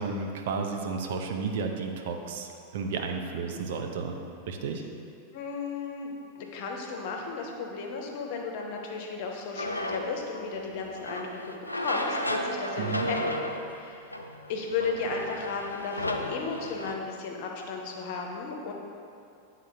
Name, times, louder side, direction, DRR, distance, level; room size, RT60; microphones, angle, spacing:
voice 1, 0.0-4.2 4.5-4.8 12.8-13.1, right 4 dB, 55° right, 3 dB, 0.5 m, -32 dB
voice 2, 5.3-13.4 13.7-14.0 14.5-18.7, left 4 dB, 50° left, 1 dB, 0.8 m, -34 dB
sound 1, 9.6-16.9, left 1 dB, 85° left, 0.4 m, -34 dB
9.4 x 3.8 x 2.8 m, 2.5 s
figure-of-eight pair, 90°, 0 cm